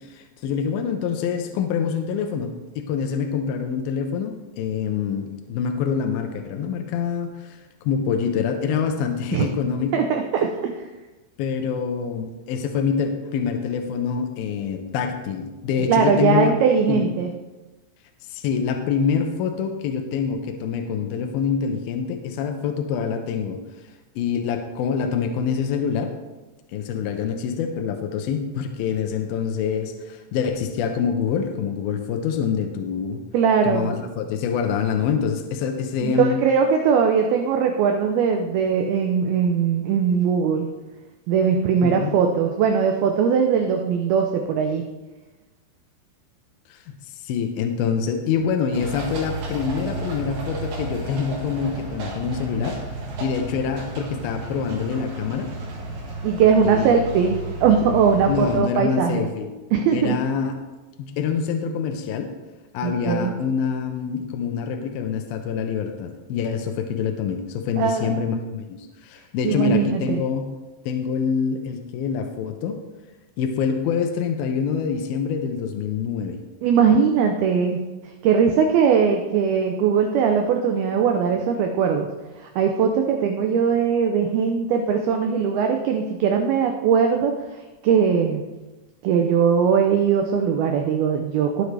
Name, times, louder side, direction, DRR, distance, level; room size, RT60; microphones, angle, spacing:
voice 1, 0.1-7.6 7.8-10.1 11.4-16.6 16.9-17.1 18.3-23.6 24.2-26.1 26.7-33.2 33.7-36.4 41.8-42.2 46.7-46.8 47.2-52.8 53.2-55.5 56.6-57.0 58.3-59.5 59.9-60.6 61.0-62.3 62.7-70.5 70.9-72.8 73.4-76.4, left 6 dB, 85° left, 5 dB, 2.1 m, -25 dB
voice 2, 9.9-10.8 15.9-17.3 33.3-33.9 36.0-40.7 41.3-44.8 56.2-59.3 59.7-60.2 62.8-63.3 67.8-68.2 69.4-70.2 76.6-77.8 78.2-82.1 82.4-88.4 89.0-91.6, right 6 dB, 85° right, 4 dB, 2.1 m, -20 dB
sound 1, 48.7-58.6, right 2 dB, 60° right, 3.4 m, -32 dB
17.5 x 7.9 x 3.4 m, 1.1 s
omnidirectional pair, 5.3 m